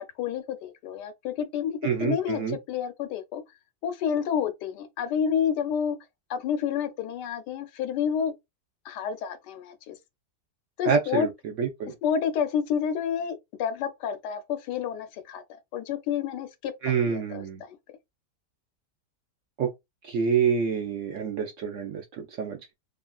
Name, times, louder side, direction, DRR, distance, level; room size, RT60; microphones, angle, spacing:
voice 1, 0.0-3.4 3.8-6.0 6.3-8.3 8.8-10.0 10.8-11.3 12.0-15.4 15.7-17.8, left 8 dB, 80° left, 1.2 m, -29 dB
voice 2, 1.8-2.6 10.8-11.3 11.6-11.9 16.8-17.6 19.6-19.7 20.0-22.7, right 6 dB, 75° right, 0.7 m, -27 dB
2.9 x 2.5 x 2.2 m
omnidirectional pair, 1.8 m